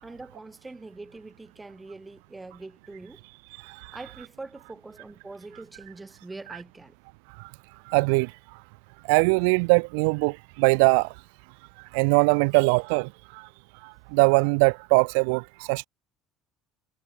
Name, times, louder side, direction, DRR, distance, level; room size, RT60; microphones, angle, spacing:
voice 1, 0.0-3.2 3.9-6.9, right 3 dB, 10° right, 4.9 m, -43 dB
voice 2, 3.6-4.0 7.9-8.3 9.1-11.1 11.9-13.5 13.8-15.9, right 34 dB, 90° right, 0.5 m, -22 dB
cardioid pair, 130°, 0 cm